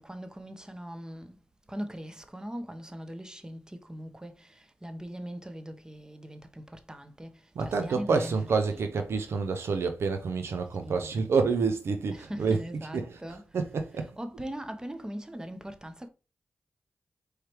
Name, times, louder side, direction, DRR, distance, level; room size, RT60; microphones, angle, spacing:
voice 1, 0.0-1.4 1.7-7.3 7.6-8.8 10.8-11.2 12.1-13.5 14.0-16.1, equal, 15° right, 0.8 m, -41 dB
voice 2, 7.6-13.2 13.5-14.2, right 4 dB, 75° right, 0.5 m, -28 dB
4.6 x 3.2 x 3.0 m
cardioid pair, 40°, 4 cm